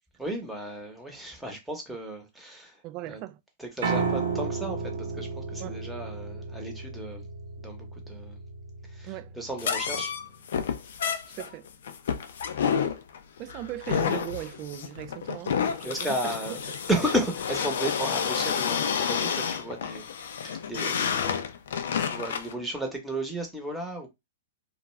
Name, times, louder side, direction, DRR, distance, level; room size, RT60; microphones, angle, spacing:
voice 1, 0.2-3.2 3.6-7.2 7.6-8.4 8.9-10.1 15.8-16.6 16.9-21.1 22.0-24.1, right 1 dB, 5° right, 0.9 m, -34 dB
voice 2, 2.8-3.4 5.6-5.8 9.1-9.3 11.3-11.7 13.4-16.4, right 15 dB, 40° right, 0.3 m, -38 dB
Piano, 3.8-10.0, right 4 dB, 70° right, 0.9 m, -33 dB
sound 1, 9.6-22.5, left 7 dB, 70° left, 0.4 m, -30 dB
2.3 x 2.3 x 3.1 m
hypercardioid pair, 130°, 0 cm